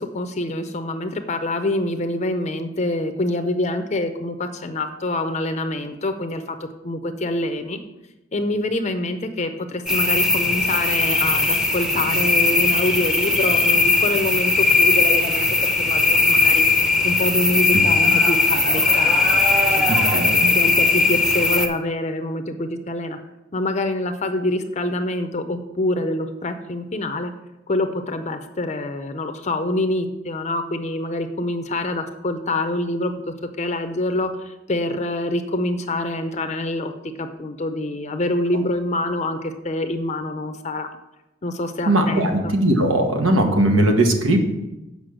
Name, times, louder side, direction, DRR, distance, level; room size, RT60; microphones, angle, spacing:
voice 1, 0.0-6.6 6.8-7.8 8.3-15.5 15.8-16.6 17.0-20.2 20.5-23.2 23.5-27.3 27.7-36.9 37.2-40.9 41.4-42.5, left 1 dB, 35° left, 8 dB, 0.5 m, -26 dB
sound 1, 9.9-21.7, left 3 dB, 5° right, 0.7 m, -18 dB
voice 2, 19.9-20.5 41.9-44.4, right 1 dB, 90° right, 3 dB, 1.4 m, -19 dB
7.7 x 5.3 x 6.4 m, 0.98 s
head